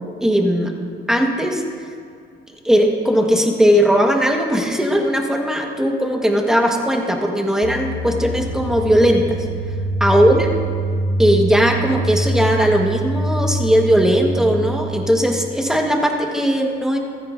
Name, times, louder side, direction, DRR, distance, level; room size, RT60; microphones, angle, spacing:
voice 1, 0.2-0.7 1.1-1.6 2.6-9.5 10.0-10.5 11.2-17.0, equal, 5° right, 2 dB, 1.5 m, -18 dB
sound 1, 7.6-15.4, right 2 dB, 75° left, 1.0 m, -24 dB
15.0 x 14.0 x 2.7 m, 2.2 s
cardioid pair, 90°, 20 cm